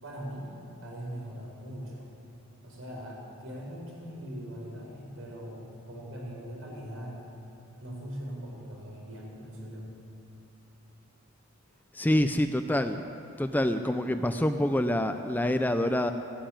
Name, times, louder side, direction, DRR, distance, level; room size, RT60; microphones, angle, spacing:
voice 1, 0.0-0.5 0.8-2.1 2.6-7.2 7.8-9.9, equal, 75° right, -3 dB, 5.0 m, -41 dB
voice 2, 11.9-13.0 13.4-16.1, left 1 dB, 10° left, 8 dB, 0.4 m, -26 dB
16.0 x 10.0 x 8.9 m, 2.9 s
head